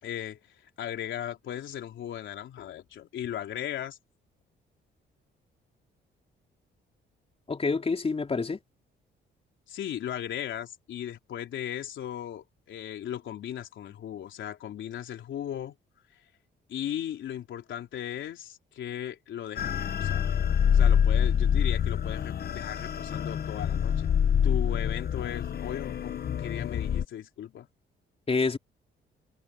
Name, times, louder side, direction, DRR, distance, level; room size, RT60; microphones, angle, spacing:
voice 1, 0.0-4.0 9.7-15.7 16.7-20.3 20.7-24.1 24.4-27.7, left 10 dB, 75° left, 3.9 m, -37 dB
voice 2, 7.5-8.6 28.3-28.6, left 4 dB, 30° left, 4.1 m, -27 dB
sound 1, 19.6-27.0, left 8 dB, 55° left, 1.4 m, -26 dB
cardioid pair, 90°, 20 cm